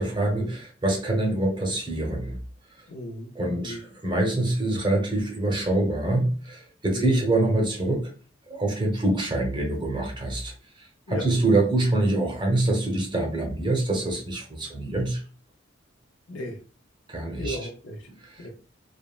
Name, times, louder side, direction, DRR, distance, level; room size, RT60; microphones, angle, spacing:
voice 1, 0.0-2.4 3.4-8.1 8.5-15.2 17.1-17.6 18.2-18.5, right 2 dB, 25° right, 0.7 m, -25 dB
voice 2, 2.9-3.8 6.9-7.2 11.1-11.3 16.3-16.6 17.4-18.1 18.4-18.5, left 1 dB, 70° left, 0.6 m, -36 dB
3.3 x 2.0 x 2.3 m
head